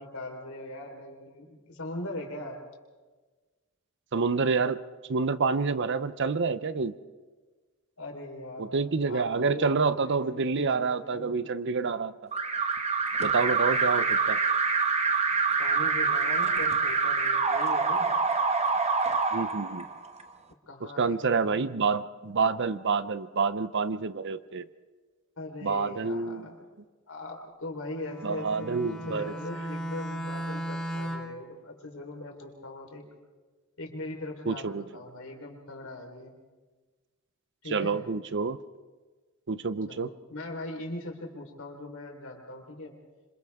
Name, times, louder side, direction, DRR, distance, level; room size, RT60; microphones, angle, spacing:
voice 1, 0.0-2.6 8.0-11.3 15.6-18.1 20.7-21.6 25.4-26.7 27.1-33.0 33.8-36.3 37.6-38.0 39.9-42.9, left 2 dB, 75° left, 1 dB, 4.2 m, -40 dB
voice 2, 4.1-4.8 5.1-6.9 8.6-12.1 13.2-14.4 19.3-19.9 21.0-24.7 25.6-26.5 28.2-29.3 34.5-34.8 37.7-38.6 39.5-40.1, right 4 dB, 55° right, 14 dB, 0.7 m, -28 dB
Alarm, 12.3-20.2, right 4 dB, 30° right, 1.1 m, -26 dB
Bowed string instrument, 28.0-31.4, right 1 dB, 5° left, 3.3 m, -36 dB
27.5 x 26.5 x 3.6 m, 1.3 s
head